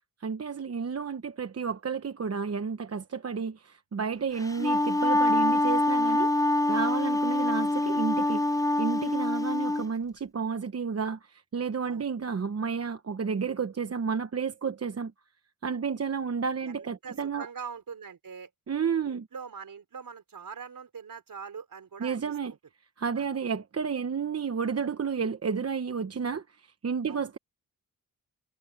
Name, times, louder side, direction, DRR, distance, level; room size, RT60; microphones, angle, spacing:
voice 1, 0.2-6.3 6.7-8.4 8.8-15.1 15.6-17.5 18.7-19.3 22.0-22.5 23.0-26.4 26.8-27.4, right 6 dB, 45° right, 1.0 m, -31 dB
Wind instrument woodwind instrument, 4.4-9.8, left 2 dB, 10° left, 0.5 m, -25 dB
voice 2, 16.6-18.5 19.0-22.6 23.1-23.3 27.1-27.3, right 6 dB, 65° right, 5.1 m, -43 dB
wide cardioid pair, 115°, 36 cm